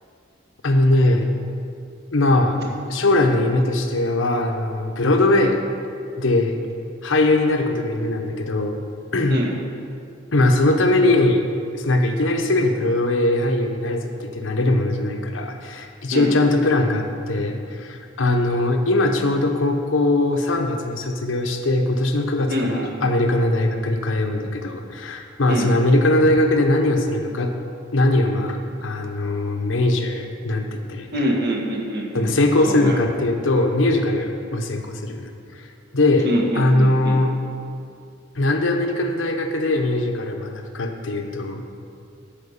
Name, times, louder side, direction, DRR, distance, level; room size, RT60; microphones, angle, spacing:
voice 1, 0.6-1.3 2.1-2.6 2.9-5.6 6.2-6.6 7.0-8.8 9.1-9.4 10.3-11.5 11.7-27.5 27.9-31.1 32.1-35.3 35.6-35.7 35.9-36.3 36.5-37.3 38.3-41.7, left 2 dB, 80° left, 4 dB, 1.0 m, -20 dB
voice 2, 22.5-23.1 25.5-25.7 31.1-32.3 32.6-33.0 36.2-37.2, equal, 60° right, -1 dB, 1.6 m, -25 dB
10.5 x 5.0 x 7.1 m, 2.3 s
head